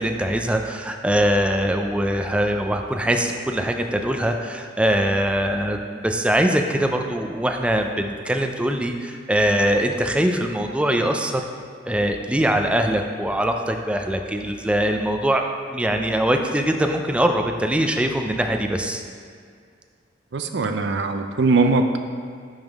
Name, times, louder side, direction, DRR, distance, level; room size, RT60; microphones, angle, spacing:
voice 1, 0.0-5.8 6.0-11.5 11.9-15.4 15.7-19.0, right 1 dB, 5° right, 4 dB, 0.4 m, -22 dB
voice 2, 20.3-22.0, right 3 dB, 65° right, 6 dB, 0.5 m, -20 dB
10.5 x 3.6 x 3.5 m, 2.1 s
head